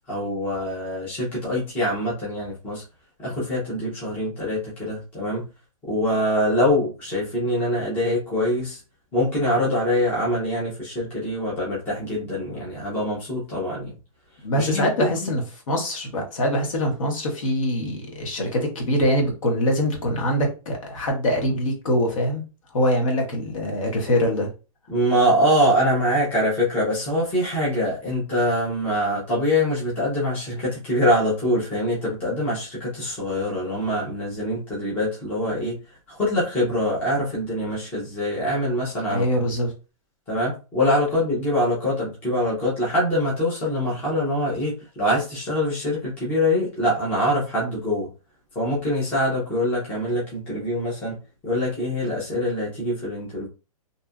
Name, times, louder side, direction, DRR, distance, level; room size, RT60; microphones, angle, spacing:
voice 1, 0.1-2.8 3.2-5.5 5.8-8.8 9.1-13.9 14.5-15.3 24.9-35.8 36.1-39.2 40.3-48.1 48.5-51.2 51.4-53.5, left 1 dB, 10° left, 0.6 m, -24 dB
voice 2, 14.4-22.4 22.7-24.5 39.1-39.7, equal, 60° left, 1.1 m, -23 dB
2.7 x 2.3 x 2.3 m
hypercardioid pair, 175°, 19 cm